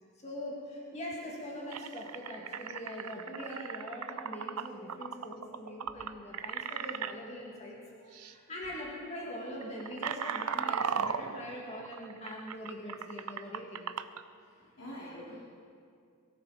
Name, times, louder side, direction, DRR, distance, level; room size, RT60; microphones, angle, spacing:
voice 1, 0.2-13.8, equal, 30° left, -3 dB, 2.6 m, -42 dB
sound 1, 1.1-1.2 1.7-7.1 8.1-8.3 8.6-8.9 9.4-14.2, right 7 dB, 80° right, 0.6 m, -37 dB
voice 2, 14.4-15.4, equal, 70° left, -6 dB, 3.1 m, -46 dB
23.0 x 14.0 x 4.4 m, 2.2 s
head